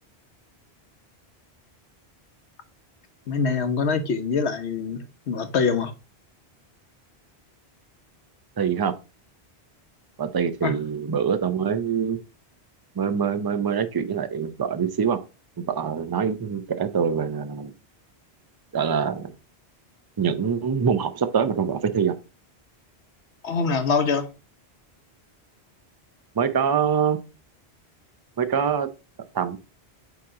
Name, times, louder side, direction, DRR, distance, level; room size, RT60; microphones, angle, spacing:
voice 1, 3.3-5.9 10.6-10.7 23.4-24.3, left 5 dB, 85° left, 1.2 m, -24 dB
voice 2, 8.6-8.9 10.2-12.2 13.0-15.2 15.6-17.7 18.7-19.3 20.2-22.2 26.4-27.2 28.4-28.9 29.3-29.6, right 7 dB, 30° right, 0.4 m, -24 dB
8.3 x 3.0 x 3.7 m
omnidirectional pair, 1.1 m